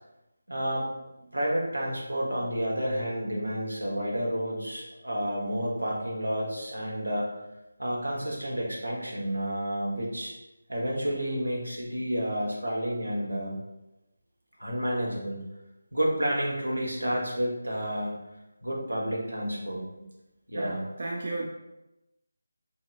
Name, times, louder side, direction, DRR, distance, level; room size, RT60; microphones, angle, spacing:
voice 1, 0.5-0.9 1.3-7.3 7.8-10.3 10.7-13.6 14.6-15.4 15.9-18.2 18.6-20.0 20.5-20.8, equal, 90° right, -3 dB, 1.2 m, -30 dB
voice 2, 20.5-21.5, right 2 dB, 50° right, -1 dB, 0.4 m, -34 dB
4.2 x 2.8 x 2.5 m, 0.95 s
figure-of-eight pair, 160°, 0 cm